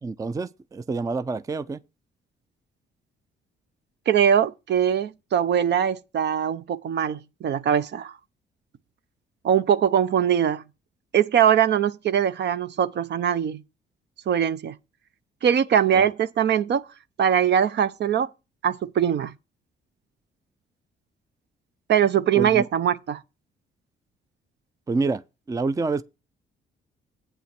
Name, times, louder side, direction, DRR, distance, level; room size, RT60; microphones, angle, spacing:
voice 1, 0.0-1.8 15.9-16.1 22.4-22.7 24.9-25.2 25.5-26.0, right 3 dB, 15° right, 0.4 m, -27 dB
voice 2, 4.1-8.1 9.4-10.6 11.1-13.6 14.3-14.7 15.4-16.8 17.2-18.3 18.6-19.3 21.9-23.2, right 9 dB, 60° right, 0.7 m, -22 dB
8.4 x 5.7 x 5.8 m
cardioid pair, 90°, 20 cm